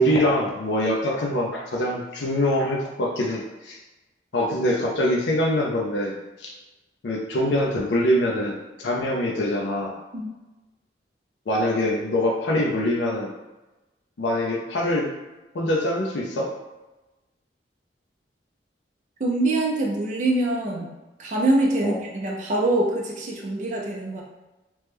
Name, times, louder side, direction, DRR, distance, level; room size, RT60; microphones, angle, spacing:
voice 1, 0.0-3.8 4.3-6.5 7.0-10.0 11.5-13.3 14.2-15.1 15.5-16.5 21.8-22.0, left 1 dB, 70° left, -1 dB, 0.5 m, -24 dB
voice 2, 19.2-20.9 21.2-24.2, right 2 dB, 45° right, -2 dB, 0.5 m, -24 dB
3.0 x 2.1 x 3.3 m, 1.1 s
head